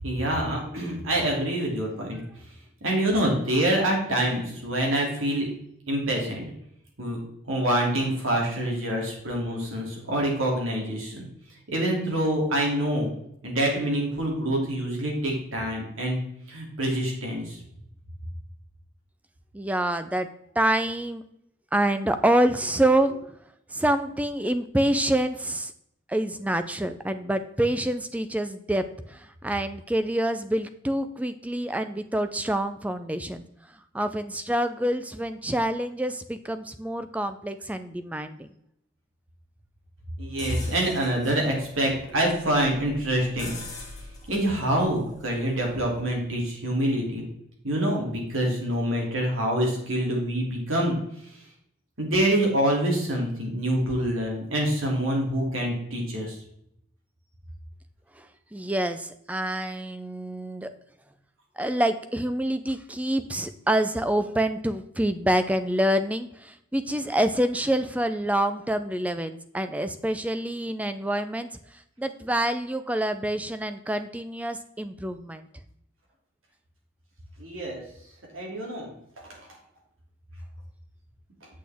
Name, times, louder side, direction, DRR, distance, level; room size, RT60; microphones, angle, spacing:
voice 1, 0.0-2.2 2.8-5.5 5.9-6.5 7.0-7.2 7.5-11.3 11.7-13.1 13.4-16.2 16.5-17.6 40.2-43.5 44.3-47.3 47.6-50.9 52.0-56.4 77.4-77.8 78.3-78.9, right 1 dB, 80° right, -1 dB, 2.6 m, -26 dB
voice 2, 19.5-21.2 21.7-23.4 23.7-25.7 26.1-33.4 33.9-38.5 58.2-60.7 61.6-75.5, right 1 dB, 5° right, 10 dB, 0.4 m, -27 dB
sound 1, 40.4-46.2, left 2 dB, 20° left, 1.8 m, -44 dB
8.4 x 6.3 x 3.5 m, 0.75 s
head